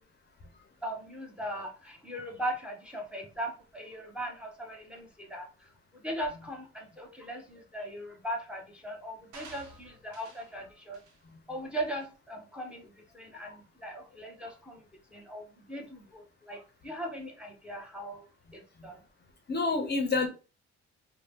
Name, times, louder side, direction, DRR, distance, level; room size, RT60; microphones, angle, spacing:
voice 1, 0.8-11.0 11.5-14.8 15.1-18.2 18.5-19.0, equal, 5° right, 0.8 m, -39 dB
sound 1, 9.3-10.5 10.9-11.2 11.7-11.9, right 3 dB, 80° right, 0.8 m, -51 dB
voice 2, 19.5-20.3, left 3 dB, 35° left, 0.6 m, -30 dB
2.6 x 2.1 x 3.4 m
cardioid pair, 90°, 30 cm